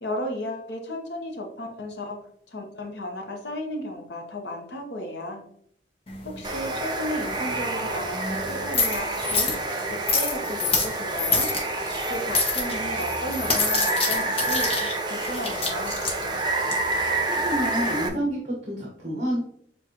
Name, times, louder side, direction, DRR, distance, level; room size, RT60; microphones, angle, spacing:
voice 1, 0.0-2.2 2.5-5.4 6.2-9.5 9.9-11.5 12.1-15.9, left 1 dB, 70° left, 3 dB, 1.0 m, -34 dB
sound 1, 6.1-18.1, left 4 dB, 35° left, 0.9 m, -29 dB
Water, 6.4-18.1, right 2 dB, 25° right, 0.5 m, -28 dB
voice 2, 17.2-19.5, equal, 40° right, -3 dB, 1.1 m, -28 dB
7.1 x 2.5 x 2.9 m, 0.66 s
head